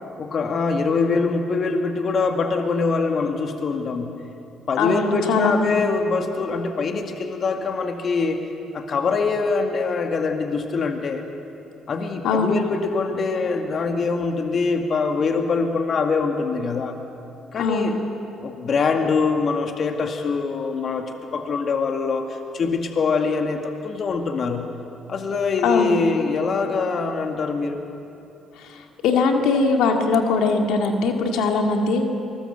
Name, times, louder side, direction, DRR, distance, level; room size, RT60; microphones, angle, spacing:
voice 1, 0.2-4.1 4.7-8.4 8.7-11.2 11.9-17.0 17.5-18.0 18.4-24.7 25.1-27.8, left 4 dB, 55° left, 5 dB, 2.0 m, -23 dB
voice 2, 4.8-5.8 12.2-12.5 17.6-17.9 25.6-25.9 28.6-32.2, left 4 dB, 80° left, 3 dB, 2.1 m, -21 dB
24.0 x 19.5 x 8.0 m, 2.8 s
supercardioid pair, 75°, 0 cm